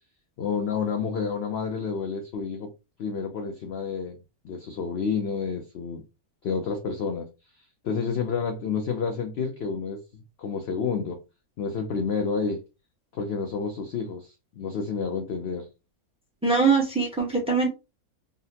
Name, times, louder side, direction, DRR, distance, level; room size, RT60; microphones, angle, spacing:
voice 1, 0.4-2.7 3.0-4.2 4.4-6.0 6.4-10.0 10.4-11.2 11.6-12.6 13.1-15.7, left 5 dB, 65° left, 0.6 m, -29 dB
voice 2, 16.4-17.7, right 4 dB, 5° right, 0.7 m, -22 dB
3.7 x 2.1 x 2.7 m
omnidirectional pair, 1.5 m